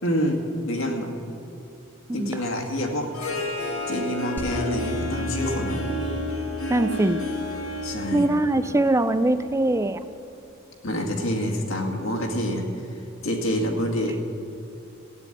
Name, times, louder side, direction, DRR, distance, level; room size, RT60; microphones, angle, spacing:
voice 1, 0.0-1.1 2.1-3.1 3.9-5.8 7.8-8.3 10.8-12.7 13.2-14.2, equal, 70° left, 2 dB, 2.2 m, -27 dB
Harp, 2.9-10.0, left 1 dB, 85° left, 2.6 m, -32 dB
sound 1, 4.4-9.6, left 1 dB, 10° left, 1.3 m, -36 dB
voice 2, 6.7-7.2 8.1-10.0, right 2 dB, 15° right, 12 dB, 0.4 m, -22 dB
15.0 x 9.4 x 9.1 m, 2.8 s
head